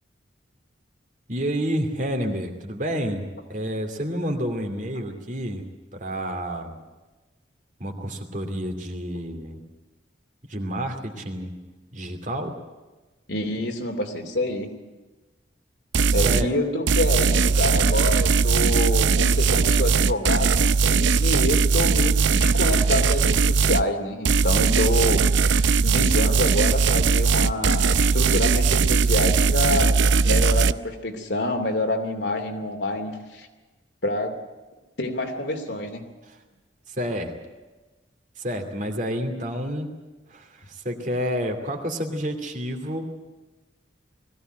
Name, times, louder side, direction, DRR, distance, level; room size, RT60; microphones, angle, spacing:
voice 1, 1.3-5.6 5.9-6.8 7.8-9.6 10.5-11.5 11.9-12.5 16.0-16.5 36.3-36.4 36.9-37.3 38.4-39.9 40.3-43.1, equal, 40° right, 4 dB, 2.6 m, -29 dB
voice 2, 13.3-14.7 16.1-25.3 25.8-33.5 34.0-34.4 35.0-36.0, left 1 dB, 65° left, 4 dB, 2.9 m, -27 dB
sound 1, 15.9-16.5 16.9-23.9 24.3-30.7, right 5 dB, 75° right, 0.6 m, -19 dB
21.0 x 16.0 x 9.2 m, 1.2 s
head